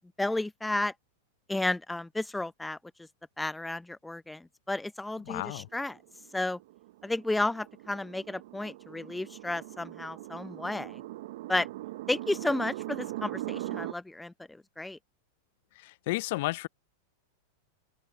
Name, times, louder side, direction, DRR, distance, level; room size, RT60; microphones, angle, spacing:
voice 1, 0.2-0.9 1.5-2.8 3.4-6.0 6.3-6.6 7.0-11.0 11.5-11.7 12.1-15.0, left 2 dB, 5° left, 0.7 m, -32 dB
voice 2, 5.3-5.7 15.8-16.7, left 20 dB, 60° left, 0.6 m, -32 dB
sound 1, 5.9-13.9, right 16 dB, 65° right, 0.5 m, -40 dB
open air
hypercardioid pair, 110°, 0 cm